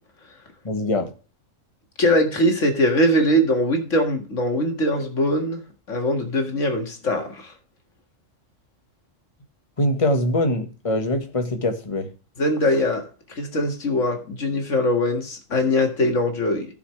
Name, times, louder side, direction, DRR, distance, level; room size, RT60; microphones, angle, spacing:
voice 1, 0.6-1.1 9.8-12.1, left 1 dB, 25° left, 1.5 m, -23 dB
voice 2, 2.0-5.6 5.9-7.5 12.4-13.0 13.3-16.7, left 1 dB, 70° left, 2.3 m, -21 dB
15.0 x 6.4 x 3.2 m
omnidirectional pair, 1.4 m